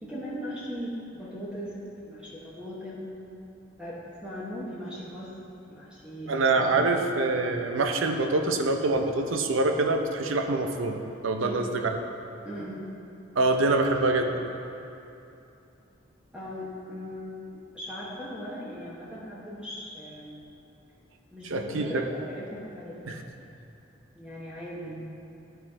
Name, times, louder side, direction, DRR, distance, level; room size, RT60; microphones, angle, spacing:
voice 1, 0.0-3.2 3.8-5.4 5.7-6.3 6.6-7.0 11.4-11.7 12.4-12.9 16.3-20.4 21.3-23.2 24.1-25.0, equal, 5° right, -8 dB, 1.1 m, -39 dB
voice 2, 6.3-11.9 13.4-14.4 21.4-22.1 23.1-23.2, right 3 dB, 75° right, 5 dB, 0.6 m, -25 dB
11.5 x 4.7 x 3.6 m, 2.8 s
head